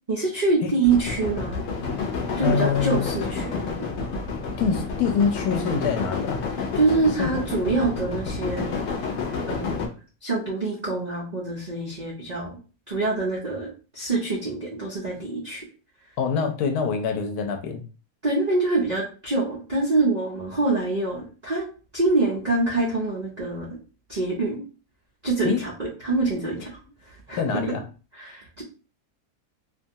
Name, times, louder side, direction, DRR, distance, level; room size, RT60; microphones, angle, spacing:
voice 1, 0.1-1.6 2.4-3.7 6.7-8.7 9.5-9.9 10.2-12.6 12.9-13.7 13.9-15.6 18.2-21.7 21.9-23.7 24.1-24.6 25.2-26.8 27.3-27.4 27.7-27.8 28.1-28.6, right 3 dB, 80° right, -4 dB, 0.3 m, -25 dB
sound 1, 0.8-9.9, left 4 dB, 60° left, 0.8 m, -29 dB
voice 2, 2.4-3.1 4.6-6.4 7.2-7.3 16.2-17.8 25.4-25.6 27.4-27.8, left 6 dB, 85° left, 4 dB, 1.1 m, -25 dB
2.7 x 2.3 x 2.6 m, 0.35 s
omnidirectional pair, 1.7 m